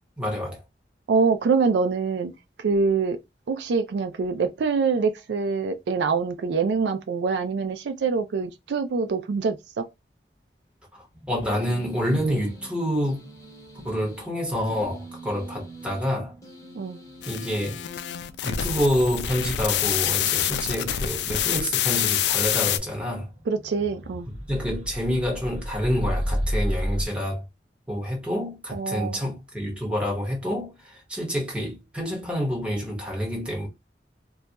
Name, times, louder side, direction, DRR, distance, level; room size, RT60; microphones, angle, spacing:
voice 1, 0.2-0.6 10.9-13.3 13.8-16.4 17.3-17.8 18.4-23.3 24.3-27.4 27.9-33.7, equal, 5° right, 1.0 m, -28 dB
voice 2, 1.1-2.3 2.6-3.2 3.5-9.9 16.8-17.0 23.5-24.3 28.7-29.2, right 5 dB, 80° right, 0.4 m, -25 dB
sound 1, 11.1-17.9 18.2-27.1, equal, 35° right, 1.1 m, -35 dB
sound 2, 11.5-18.9, right 2 dB, 20° left, 0.9 m, -45 dB
sound 3, 17.2-22.8, left 11 dB, 75° left, 0.3 m, -26 dB
2.3 x 2.2 x 3.9 m
head